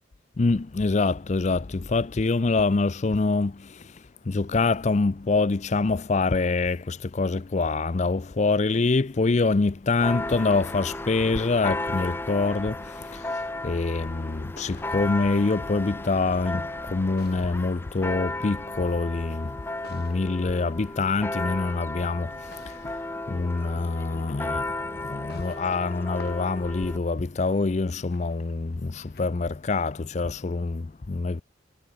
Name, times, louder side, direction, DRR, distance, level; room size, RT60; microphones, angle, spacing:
voice 1, 0.4-23.0 23.3-31.4, left 3 dB, 40° left, 0.5 m, -25 dB
Church bell, 10.0-27.0, left 2 dB, 10° left, 0.8 m, -34 dB
sound 1, 14.5-29.2, left 3 dB, 60° left, 5.9 m, -55 dB
head